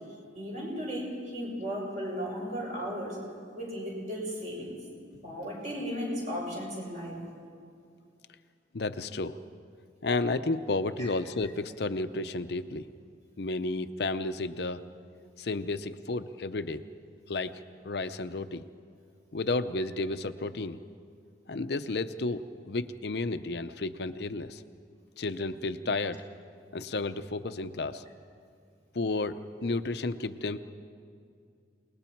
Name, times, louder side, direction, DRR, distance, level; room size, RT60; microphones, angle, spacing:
voice 1, 0.3-3.2 3.5-4.7 5.2-7.2 11.0-11.1, equal, 40° right, -3 dB, 6.6 m, -35 dB
voice 2, 8.7-9.4 10.0-12.9 13.4-14.8 15.4-16.8 17.3-18.6 19.3-20.8 21.5-24.6 25.2-26.2 26.7-28.0 28.9-30.6, left 3 dB, 65° left, 10 dB, 0.6 m, -32 dB
28.5 x 20.0 x 4.5 m, 2.3 s
head